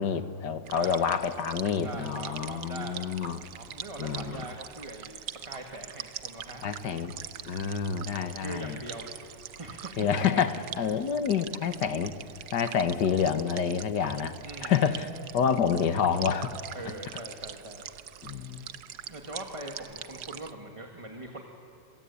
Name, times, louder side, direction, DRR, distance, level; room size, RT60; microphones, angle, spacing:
voice 1, 0.0-3.4 4.0-4.4 6.6-7.1 7.5-8.8 10.0-12.1 12.5-14.4 14.6-15.1 15.3-16.6 18.2-18.7, left 7 dB, 65° left, 10 dB, 1.8 m, -28 dB
voice 2, 0.7-1.2 1.8-3.0 3.5-6.6 8.1-9.2 9.6-10.1 11.0-11.1 14.4-15.0 16.7-17.9 19.1-21.4, right 2 dB, 15° right, 2 dB, 1.9 m, -42 dB
sound 1, 0.7-20.5, right 10 dB, 65° right, 1.3 m, -43 dB
27.0 x 26.0 x 8.5 m, 2.7 s
omnidirectional pair, 2.1 m